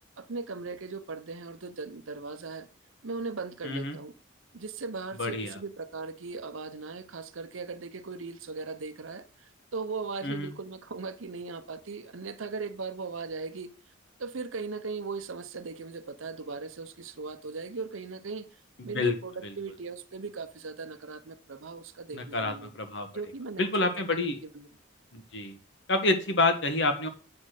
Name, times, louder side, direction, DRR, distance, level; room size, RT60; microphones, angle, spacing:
voice 1, 0.2-2.7 3.0-4.1 4.5-13.7 14.2-18.5 18.8-22.7 23.1-24.2 24.5-24.7, right 4 dB, 80° right, 0.8 m, -38 dB
voice 2, 3.6-4.0 5.2-5.6 10.2-10.5 18.8-19.1 19.4-19.5 22.1-23.1 23.6-24.4 25.1-25.6 25.9-27.1, left 2 dB, 60° left, 1.4 m, -28 dB
8.6 x 4.1 x 6.4 m
head